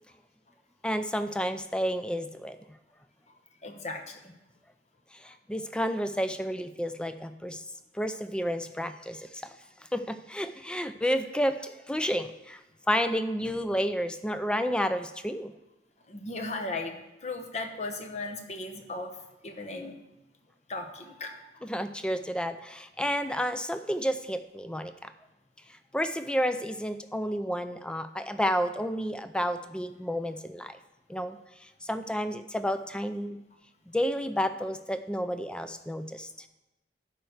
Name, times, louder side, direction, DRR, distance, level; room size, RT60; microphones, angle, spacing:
voice 1, 0.8-2.6 5.2-7.6 7.9-9.5 9.9-12.6 12.9-15.5 21.6-25.1 25.9-30.8 31.1-31.4 31.8-33.4 33.9-36.5, equal, 5° left, 10 dB, 0.4 m, -31 dB
voice 2, 3.6-4.3 16.1-19.9 20.7-21.5, left 2 dB, 40° left, 4 dB, 1.0 m, -37 dB
11.5 x 4.6 x 6.4 m, 0.98 s
head